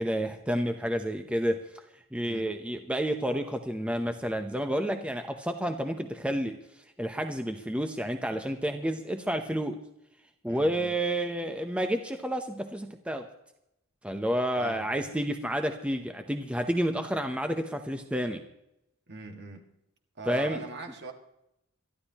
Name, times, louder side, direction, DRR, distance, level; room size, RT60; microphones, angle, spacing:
voice 1, 0.0-1.6 2.1-9.8 10.4-13.3 14.0-18.4 20.3-20.6, equal, 5° right, 6 dB, 0.8 m, -30 dB
voice 2, 10.5-10.9 14.5-15.1 19.1-19.6 20.2-21.1, right 3 dB, 50° right, 4 dB, 1.9 m, -41 dB
23.0 x 13.5 x 3.0 m, 0.83 s
head